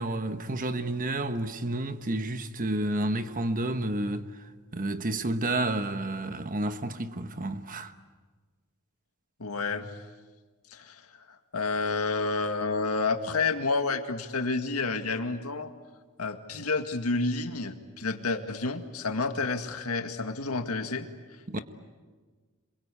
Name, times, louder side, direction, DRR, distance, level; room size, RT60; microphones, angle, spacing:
voice 1, 0.0-4.3 4.7-7.9 21.5-21.6, right 1 dB, 40° right, 1.2 m, -30 dB
voice 2, 9.4-9.9 10.7-11.0 11.5-15.7 16.2-21.1, left 3 dB, 90° left, 2.0 m, -29 dB
27.0 x 23.0 x 8.4 m
head